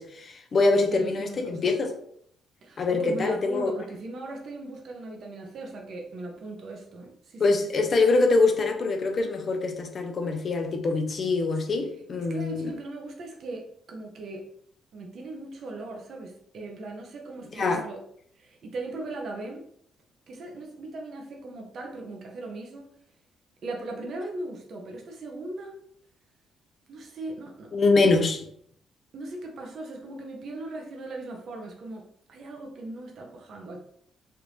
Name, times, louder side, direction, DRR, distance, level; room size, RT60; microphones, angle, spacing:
voice 1, 0.0-2.0 2.8-3.7 7.4-12.7 17.6-17.8 27.7-28.5, left 3 dB, 45° left, 0.6 m, -24 dB
voice 2, 0.7-1.7 2.6-7.5 12.2-14.5 14.9-18.0 18.4-19.6 20.3-22.9 23.6-25.8 26.9-27.8 29.1-33.8, right 2 dB, 60° right, 0.7 m, -38 dB
3.3 x 2.5 x 3.1 m
cardioid pair, 90°, 0 cm